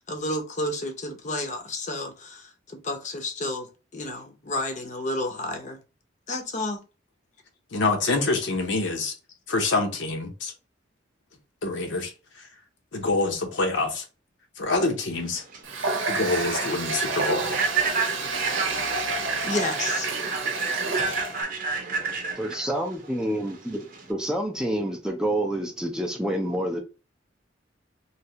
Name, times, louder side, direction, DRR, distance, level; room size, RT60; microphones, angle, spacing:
voice 1, 0.0-3.7 3.9-5.8 6.3-6.8 19.4-20.1, left 1 dB, 40° left, 0.6 m, -31 dB
voice 2, 7.7-9.1 9.5-10.5 11.6-12.5 12.9-14.0 14.6-15.4 16.1-17.5, left 3 dB, 70° left, 0.8 m, -26 dB
Human voice / Train, 15.2-24.1, right 4 dB, 45° right, 0.7 m, -30 dB
Water tap faucet, 15.6-21.4, right 3 dB, 85° right, 0.8 m, -29 dB
voice 3, 22.4-26.8, right 1 dB, 5° right, 0.4 m, -28 dB
3.2 x 2.8 x 2.8 m
head